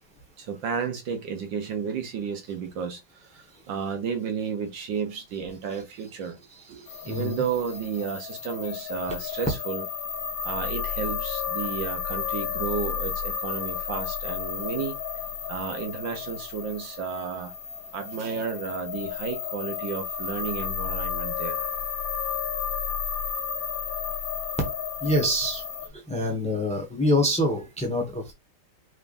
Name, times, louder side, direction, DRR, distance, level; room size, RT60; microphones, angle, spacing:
voice 1, 0.4-6.4 6.7-9.8 10.4-15.0 15.5-17.5 17.9-21.6, right 6 dB, 65° right, 1.6 m, -32 dB
sound 1, 6.9-25.9, left 7 dB, 70° left, 1.7 m, -32 dB
voice 2, 7.0-7.4 25.0-25.6 26.1-28.3, left 1 dB, 5° left, 1.1 m, -25 dB
5.6 x 3.5 x 2.6 m
omnidirectional pair, 2.3 m